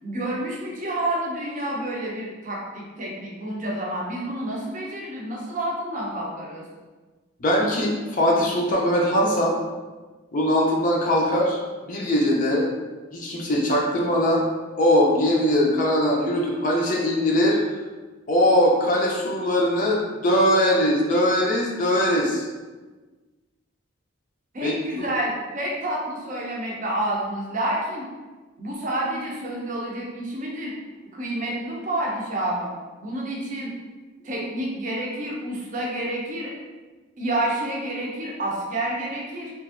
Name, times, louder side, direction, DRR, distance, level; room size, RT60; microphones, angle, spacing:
voice 1, 0.0-6.7 24.5-28.1 28.6-30.7 31.1-32.7 33.0-33.7 34.2-36.5 37.2-39.5, right 1 dB, 35° right, -3 dB, 0.5 m, -29 dB
voice 2, 7.4-9.6 10.3-11.6 11.9-12.7 13.1-14.4 14.8-17.6 18.3-22.5 24.6-25.1, equal, 40° left, -2 dB, 0.4 m, -21 dB
2.9 x 2.5 x 2.4 m, 1.3 s
head